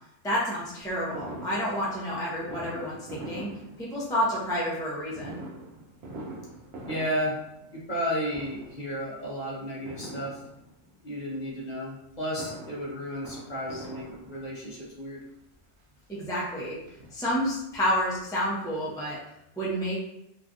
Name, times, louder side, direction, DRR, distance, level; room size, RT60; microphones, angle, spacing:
voice 1, 0.2-3.5 3.8-5.4 16.1-16.8 17.1-19.2 19.6-20.0, equal, 5° left, -6 dB, 0.3 m, -29 dB
Fireworks, 1.1-4.3 5.1-8.0 8.3-8.9 9.9-10.9 12.1-14.7 15.5-15.6 15.9-16.0 16.3-17.6 17.9-18.0 18.2-18.3, right 1 dB, 60° right, 0.8 m, -43 dB
voice 2, 6.9-7.4 7.7-10.4 11.0-15.2, equal, 40° left, -6 dB, 0.7 m, -33 dB
3.1 x 2.4 x 2.5 m, 0.82 s
omnidirectional pair, 1.4 m